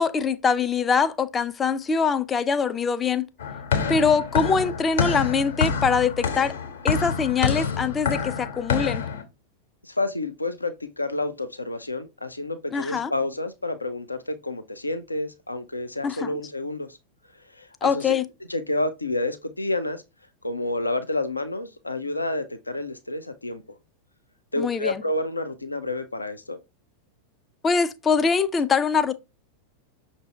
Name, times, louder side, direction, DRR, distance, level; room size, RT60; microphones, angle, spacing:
voice 1, 0.0-3.3 3.9-6.5 6.8-9.0 12.7-13.1 16.0-16.3 17.8-18.2 24.6-25.0 27.6-29.1, left 5 dB, 20° left, 0.4 m, -23 dB
sound 1, 3.4-9.2, left 6 dB, 65° left, 1.2 m, -27 dB
voice 2, 9.8-17.0 17.5-18.1 18.5-20.0 20.4-23.6 24.5-26.6, left 2 dB, 80° left, 0.5 m, -29 dB
5.9 x 2.6 x 3.2 m
figure-of-eight pair, 90°, 0 cm